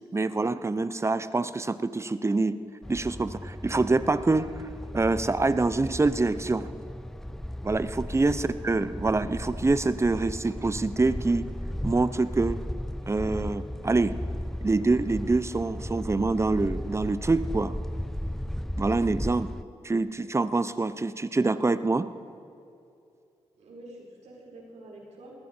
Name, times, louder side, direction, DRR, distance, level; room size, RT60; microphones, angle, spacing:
voice 1, 0.1-2.6 2.9-4.5 4.9-6.7 7.6-11.5 11.8-12.6 13.1-14.2 14.6-17.7 18.8-19.5 19.8-22.1, right 3 dB, 25° right, 14 dB, 0.7 m, -25 dB
sound 1, 2.8-19.6, left 1 dB, 5° left, 0.3 m, -35 dB
voice 2, 23.5-25.3, right 1 dB, 80° right, -2 dB, 4.2 m, -47 dB
20.0 x 14.5 x 4.4 m, 2.5 s
supercardioid pair, 50°, 12 cm